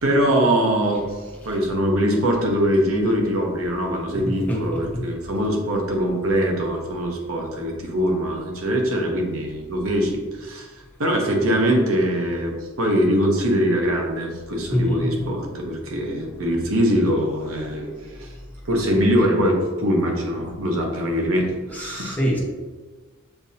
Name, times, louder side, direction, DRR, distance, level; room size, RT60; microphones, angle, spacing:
voice 1, 0.0-1.0 1.4-10.7 11.0-18.3 18.7-22.2, equal, 90° right, 1 dB, 0.9 m, -22 dB
voice 2, 4.1-5.0 14.7-15.3 21.7-22.4, equal, 10° left, -4 dB, 1.0 m, -25 dB
6.8 x 2.8 x 2.7 m, 1.3 s
head